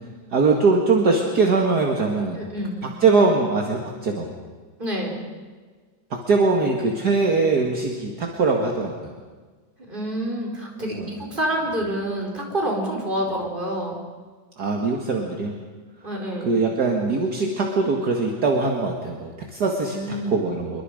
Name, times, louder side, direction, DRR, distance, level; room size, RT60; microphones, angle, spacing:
voice 1, 0.3-2.4 2.8-4.3 6.1-9.1 10.9-11.1 14.6-15.6 16.4-20.8, right 3 dB, 55° right, 1 dB, 2.4 m, -22 dB
voice 2, 2.4-2.8 4.8-5.2 9.9-14.0 16.0-16.5 19.9-20.4, right 1 dB, 25° right, -1 dB, 4.8 m, -27 dB
27.0 x 23.5 x 5.1 m, 1.4 s
omnidirectional pair, 2.1 m